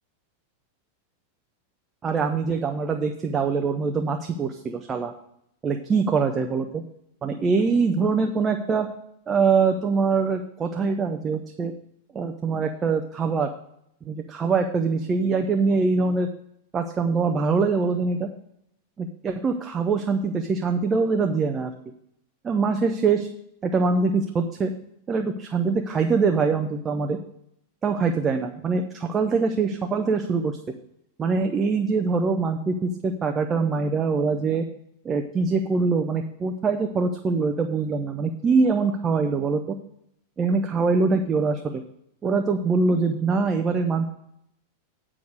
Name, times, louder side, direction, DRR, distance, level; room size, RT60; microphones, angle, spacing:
voice 1, 2.0-5.1 5.6-6.8 7.2-8.9 9.3-11.7 12.1-13.5 14.1-16.3 16.7-18.3 19.0-21.7 22.4-23.3 23.6-24.7 25.1-27.2 27.8-30.6 31.2-34.6 35.0-39.8 40.4-41.8 42.2-44.1, right 4 dB, 20° right, 5 dB, 0.6 m, -23 dB
9.3 x 4.9 x 6.4 m, 0.75 s
figure-of-eight pair, 90°, 0 cm